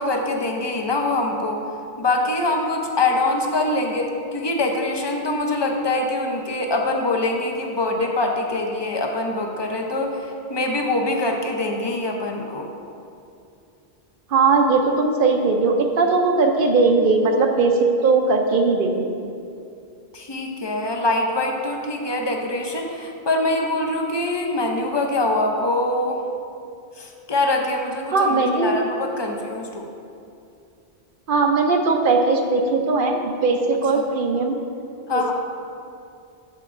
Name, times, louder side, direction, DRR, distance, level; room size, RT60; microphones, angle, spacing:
voice 1, 0.0-1.6 2.0-12.7 20.1-26.3 27.0-29.9 33.9-34.1 35.1-35.3, left 2 dB, 30° left, 2 dB, 0.6 m, -24 dB
voice 2, 14.3-19.1 28.1-28.8 31.3-34.6 35.1-35.3, right 3 dB, 65° right, 3 dB, 0.7 m, -19 dB
9.3 x 7.0 x 2.5 m, 2.6 s
omnidirectional pair, 1.0 m